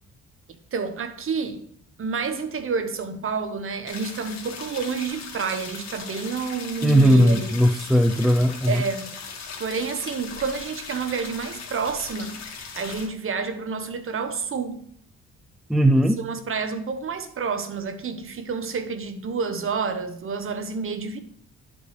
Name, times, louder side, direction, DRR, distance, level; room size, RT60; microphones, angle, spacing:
voice 1, 0.7-1.6 2.0-7.6 8.7-9.2 9.6-12.4 12.7-14.8 16.2-21.2, right 5 dB, 45° right, 1.0 m, -29 dB
sound 1, 3.9-13.1, left 5 dB, 60° left, 1.8 m, -39 dB
voice 2, 6.8-8.8 15.7-16.2, equal, ahead, 0.4 m, -18 dB
11.0 x 5.3 x 3.2 m
cardioid pair, 90°, 30 cm